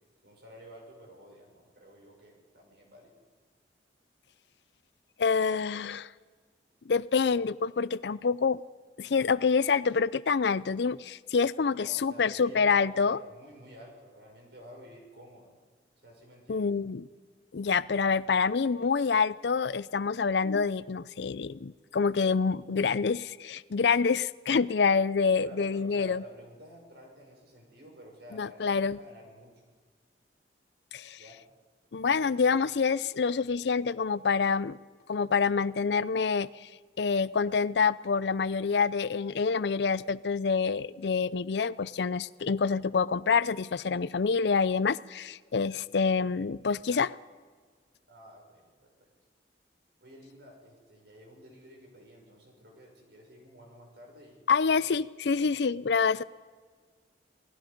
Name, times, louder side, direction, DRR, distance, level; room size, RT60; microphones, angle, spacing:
voice 1, 0.2-3.2 11.8-15.5 16.0-16.7 25.4-29.5 31.2-31.4 48.1-48.7 49.0-49.1 50.0-54.7, equal, 65° right, 1 dB, 6.4 m, -51 dB
voice 2, 5.2-6.1 6.9-8.6 9.0-13.2 16.5-17.1 17.5-26.2 28.3-29.0 30.9-31.2 31.9-34.8 35.1-36.7 37.0-47.1 54.5-56.2, left 5 dB, 70° left, 18 dB, 0.5 m, -27 dB
28.0 x 18.5 x 5.3 m, 1.5 s
head